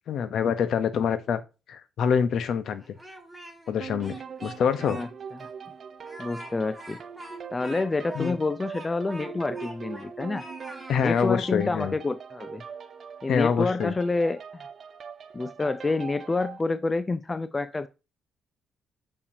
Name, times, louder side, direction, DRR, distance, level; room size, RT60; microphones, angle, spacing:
voice 1, 0.1-1.4 1.7-2.8 3.7-5.0 8.1-8.4 10.9-11.9 13.3-13.9, left 7 dB, 65° left, 0.7 m, -25 dB
Speech, 2.8-3.7 4.0-5.1 5.4-5.5 6.0-10.1 10.3-11.3, right 1 dB, 5° right, 1.7 m, -44 dB
sound 1, 3.8-16.6, right 6 dB, 50° right, 0.6 m, -42 dB
voice 2, 6.2-7.0 7.5-10.5 11.0-12.6 13.2-14.7 15.3-17.9, left 3 dB, 25° left, 0.4 m, -28 dB
6.5 x 5.7 x 2.6 m
cardioid pair, 90°, 0 cm